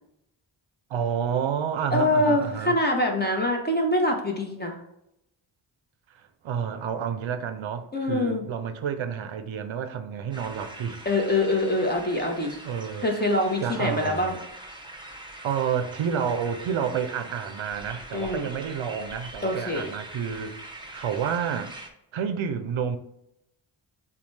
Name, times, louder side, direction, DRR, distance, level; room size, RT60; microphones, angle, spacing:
voice 1, 0.9-2.7 6.1-11.1 12.6-13.1 13.6-14.3 15.4-20.6 20.9-21.7 22.1-23.0, right 7 dB, 75° right, 0.6 m, -29 dB
voice 2, 1.9-4.8 7.9-8.4 11.0-12.6 13.0-14.4 18.1-18.4 19.4-19.9, left 1 dB, 20° left, 1.0 m, -24 dB
sound 1, 10.3-21.9, right 1 dB, 10° right, 0.8 m, -43 dB
6.9 x 2.4 x 3.2 m
cardioid pair, 75°, 47 cm